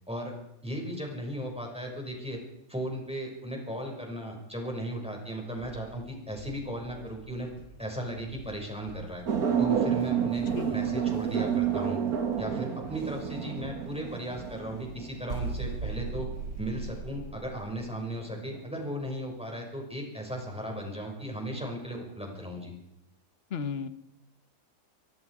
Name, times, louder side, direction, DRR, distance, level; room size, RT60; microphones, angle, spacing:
voice 1, 0.6-2.4 2.7-7.5 7.8-9.2 9.6-12.0 12.4-16.3 16.6-22.7, equal, 5° right, 0 dB, 6.1 m, -36 dB
sound 1, 5.6-17.6, right 2 dB, 25° left, 5.9 m, -53 dB
sound 2, 9.3-15.3 18.1-18.6, right 8 dB, 55° right, 1.9 m, -29 dB
voice 2, 10.5-10.9 23.5-23.9, left 6 dB, 40° left, 11 dB, 1.3 m, -34 dB
sound 3, 15.3-18.0, right 5 dB, 75° right, 2.1 m, -36 dB
24.0 x 23.5 x 5.0 m, 0.80 s
omnidirectional pair, 1.9 m